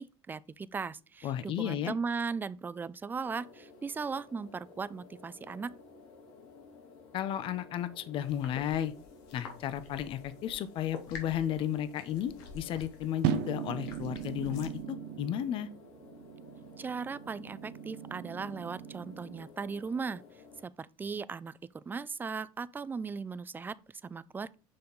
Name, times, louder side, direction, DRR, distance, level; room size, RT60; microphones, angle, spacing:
voice 1, 0.0-5.7 16.8-20.2 20.6-21.6 21.9-24.6, right 5 dB, 20° right, 0.4 m, -37 dB
voice 2, 1.2-1.9 7.1-8.9 9.3-15.7, left 10 dB, 55° left, 0.8 m, -33 dB
sound 1, 3.2-20.6, left 4 dB, 70° left, 2.3 m, -55 dB
sound 2, 8.2-14.8, left 5 dB, 85° left, 1.8 m, -49 dB
sound 3, 13.2-19.5, right 9 dB, 80° right, 0.8 m, -38 dB
6.8 x 5.4 x 3.9 m
supercardioid pair, 115°, 11 cm